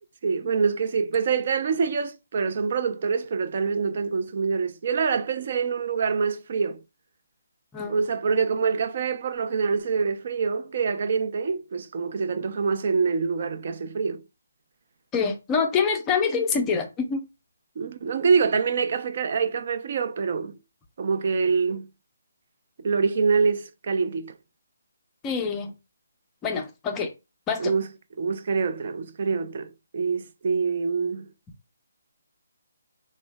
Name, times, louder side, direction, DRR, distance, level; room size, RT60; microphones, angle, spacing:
voice 1, 0.2-6.8 7.9-14.2 17.8-20.6 21.0-21.9 22.8-24.3 27.6-27.9 28.2-31.3, right 5 dB, 45° right, 0.4 m, -25 dB
voice 2, 15.1-17.2 25.2-25.7 26.4-27.1 27.5-27.7, left 5 dB, 15° left, 0.4 m, -26 dB
3.1 x 2.1 x 3.3 m
hypercardioid pair, 165°, 0 cm